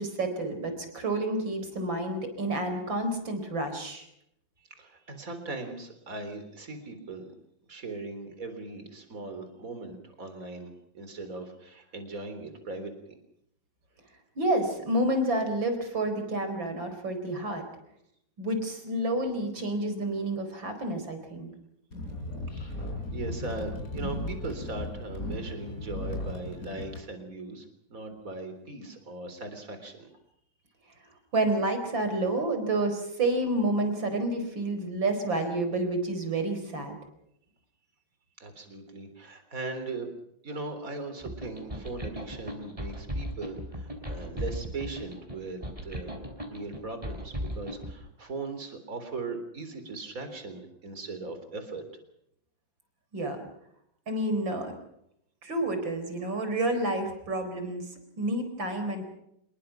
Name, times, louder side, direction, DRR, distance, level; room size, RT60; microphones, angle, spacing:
voice 1, 0.0-4.1 14.4-17.7 18.4-21.5 31.3-37.0 53.1-53.4 54.1-54.8 55.4-59.1, right 1 dB, 85° right, 7 dB, 5.1 m, -29 dB
voice 2, 4.8-7.3 7.7-12.9 22.6-22.8 23.1-30.1 38.4-40.1 40.4-46.1 46.5-51.8, right 3 dB, 45° right, 8 dB, 4.1 m, -39 dB
sound 1, 21.9-27.0, left 1 dB, 50° left, 5.1 m, -36 dB
sound 2, 41.2-47.9, equal, 15° right, 4.8 m, -36 dB
27.0 x 22.0 x 5.9 m, 0.76 s
omnidirectional pair, 2.0 m